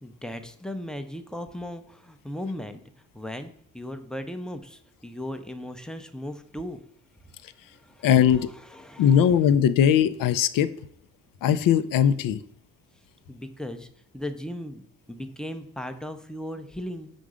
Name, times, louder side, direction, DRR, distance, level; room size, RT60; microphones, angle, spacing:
voice 1, 0.0-2.8 3.1-6.8 7.8-9.3 13.3-13.9 14.1-17.1, left 1 dB, ahead, 8 dB, 0.6 m, -37 dB
voice 2, 8.0-8.5 9.0-10.7 11.4-12.4, left 9 dB, 55° left, 14 dB, 0.5 m, -20 dB
5.3 x 3.8 x 4.9 m, 0.66 s
supercardioid pair, 60°, 39 cm